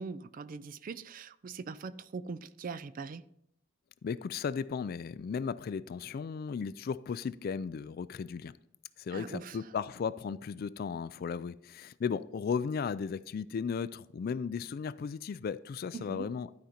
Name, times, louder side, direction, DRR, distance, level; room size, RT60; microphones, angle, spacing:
voice 1, 0.0-3.2 9.1-9.6 15.9-16.3, right 4 dB, 45° right, 0.4 m, -41 dB
voice 2, 4.0-8.6 9.0-16.5, left 6 dB, 50° left, 0.3 m, -35 dB
12.0 x 5.2 x 4.3 m
head